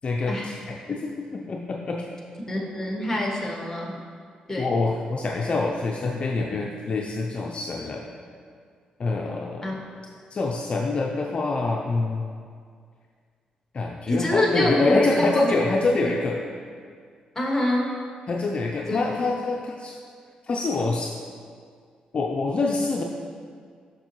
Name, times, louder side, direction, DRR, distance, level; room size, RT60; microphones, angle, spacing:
voice 1, 0.0-0.6 0.9-2.1 4.6-8.1 9.0-9.8 10.3-12.3 13.7-16.4 18.3-19.9 20.5-21.1 22.1-23.0, left 3 dB, 45° left, 0 dB, 0.5 m, -25 dB
voice 2, 2.5-3.9 4.5-4.7 9.6-9.8 14.1-15.4 17.4-17.9 18.9-19.0, left 1 dB, 15° left, -2 dB, 1.3 m, -25 dB
7.0 x 5.9 x 3.0 m, 2.1 s
cardioid pair, 90°, 3 cm